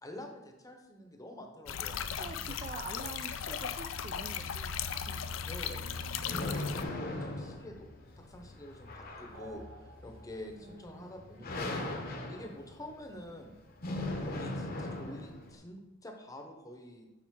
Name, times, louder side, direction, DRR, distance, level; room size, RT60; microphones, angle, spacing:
voice 1, 0.0-2.7 3.5-3.6 3.8-3.9 5.4-5.8 6.4-7.9 8.2-11.9 12.3-13.5 14.3-17.0, left 1 dB, 15° left, 4 dB, 0.8 m, -47 dB
sound 1, 1.7-6.8, left 7 dB, 75° left, 0.4 m, -37 dB
voice 2, 2.1-4.8 5.0-5.3 10.6-11.1, right 4 dB, 35° right, 4 dB, 0.4 m, -46 dB
sound 2, 5.1-15.6, left 2 dB, 50° left, 0.9 m, -40 dB
sound 3, 9.3-10.8, right 2 dB, 80° right, 0.8 m, -53 dB
7.4 x 5.0 x 3.7 m, 1.0 s
head